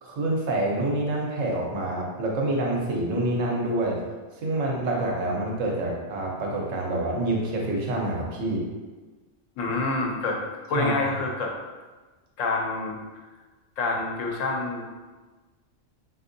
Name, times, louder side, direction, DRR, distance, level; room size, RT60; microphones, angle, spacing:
voice 1, 0.0-4.0 4.4-8.6 10.7-10.9, right 1 dB, 85° right, -1 dB, 1.1 m, -27 dB
voice 2, 9.6-10.4 10.7-11.5 12.4-13.0 13.8-14.9, left 3 dB, 90° left, 0 dB, 1.0 m, -27 dB
3.4 x 2.7 x 2.6 m, 1.3 s
omnidirectional pair, 1.3 m